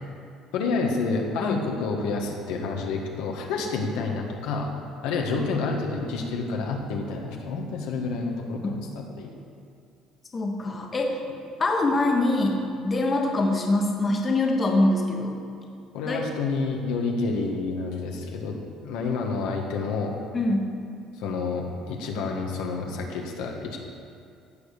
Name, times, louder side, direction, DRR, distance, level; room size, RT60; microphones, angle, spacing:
voice 1, 0.5-4.7 5.0-9.3 15.9-18.6 18.8-20.2 21.2-23.8, left 4 dB, 85° left, 1 dB, 1.6 m, -29 dB
voice 2, 10.3-11.2 11.6-15.4 16.1-16.2 20.3-20.7, left 2 dB, 25° left, 1 dB, 1.4 m, -24 dB
15.5 x 5.2 x 6.7 m, 2.4 s
cardioid pair, 115°, 0 cm